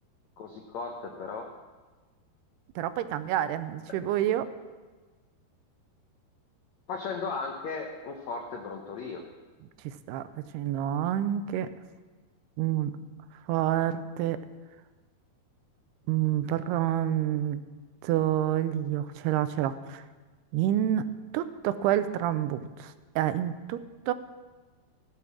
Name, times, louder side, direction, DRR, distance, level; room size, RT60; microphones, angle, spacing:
voice 1, 0.4-1.6 6.9-9.2, left 4 dB, 90° left, 3 dB, 1.5 m, -36 dB
voice 2, 2.8-4.5 9.8-10.2 10.5-11.7 12.6-12.9 13.5-14.4 16.1-17.6 18.0-20.0 20.5-24.1, right 11 dB, 85° right, 12 dB, 2.6 m, -28 dB
15.5 x 7.7 x 7.3 m, 1.3 s
omnidirectional pair, 4.6 m